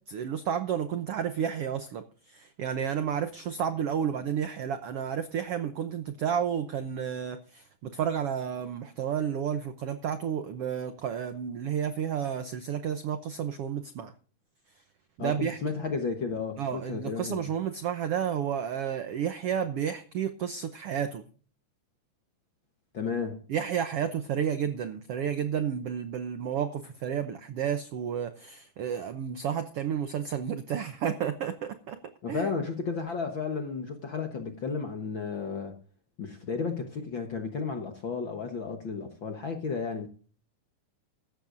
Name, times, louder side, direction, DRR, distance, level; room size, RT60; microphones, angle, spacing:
voice 1, 0.1-14.1 15.2-15.6 16.6-21.2 23.5-32.0 32.3-32.5, right 8 dB, 85° right, 1.3 m, -31 dB
voice 2, 15.2-17.4 22.9-23.4 32.2-35.8 36.2-40.1, left 5 dB, 55° left, 1.3 m, -33 dB
15.5 x 13.0 x 2.6 m
omnidirectional pair, 3.9 m